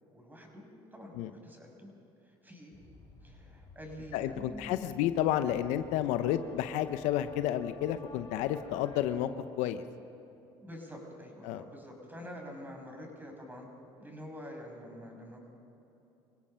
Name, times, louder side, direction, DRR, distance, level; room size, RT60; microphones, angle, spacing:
voice 1, 0.1-1.9 2.2-2.8 3.2-5.0 10.6-13.7 14.0-15.5, equal, 15° right, 1 dB, 6.3 m, -47 dB
sound 1, 2.7-9.2, left 4 dB, 45° left, 5.9 m, -52 dB
voice 2, 4.1-9.3 9.6-9.8 11.4-11.6, left 11 dB, 80° left, 10 dB, 0.9 m, -31 dB
26.5 x 17.0 x 5.7 m, 2.9 s
supercardioid pair, 80°, 12 cm